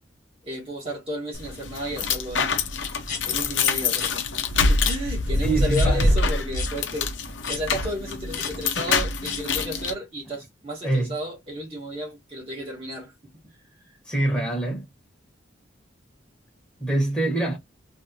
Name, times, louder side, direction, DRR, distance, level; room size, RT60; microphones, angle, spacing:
voice 1, 0.4-2.6 3.3-4.3 4.5-7.1 7.5-13.1, equal, 30° right, 1.2 m, -33 dB
sound 1, 1.3-9.9, left 3 dB, 75° left, 0.8 m, -25 dB
sound 2, 3.1-3.2 3.9-4.1 4.8-5.0 5.7-5.9 6.5-6.7 7.4-7.6 8.3-8.5 9.2-9.4, left 6 dB, 40° left, 1.5 m, -33 dB
voice 2, 5.4-6.2 10.8-11.1 14.0-14.9 16.8-17.6, right 2 dB, 5° left, 1.3 m, -24 dB
3.1 x 2.8 x 2.6 m
head